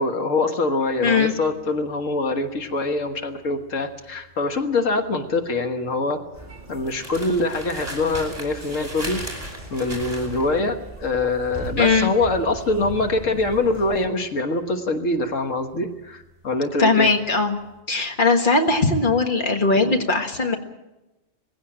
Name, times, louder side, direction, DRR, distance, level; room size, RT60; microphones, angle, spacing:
voice 1, 0.0-6.2 6.7-9.2 9.7-17.1 19.8-20.0, left 2 dB, 85° left, 6 dB, 1.8 m, -24 dB
sound 1, 0.9-17.1 17.3-17.7, right 1 dB, 30° right, 5.7 m, -39 dB
voice 2, 1.0-1.3 11.8-12.1 16.8-17.6 17.9-20.6, left 3 dB, 40° left, 4 dB, 1.7 m, -19 dB
sound 2, 6.3-14.1, right 2 dB, 10° right, 4.3 m, -39 dB
19.5 x 16.5 x 8.8 m, 1.0 s
omnidirectional pair, 1.3 m